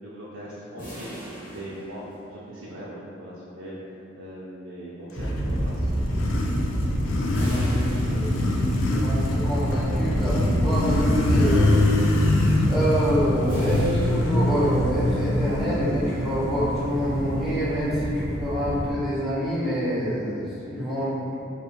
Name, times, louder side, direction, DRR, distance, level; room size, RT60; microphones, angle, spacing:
voice 1, 0.0-1.1 1.5-2.0 2.3-3.8 4.1-5.9, right 1 dB, 85° right, -8 dB, 0.4 m, -40 dB
sound 1, 0.8-2.6 7.3-9.0 13.5-15.1, equal, 45° left, 1.0 m, -41 dB
sound 2, 5.1-18.9, equal, 70° right, 0.8 m, -28 dB
Motorcycle, 5.3-17.9, left 2 dB, 75° left, 0.3 m, -25 dB
voice 2, 7.3-8.3 8.9-11.9 12.7-21.4, equal, ahead, -12 dB, 0.7 m, -26 dB
2.3 x 2.3 x 2.9 m, 2.7 s
head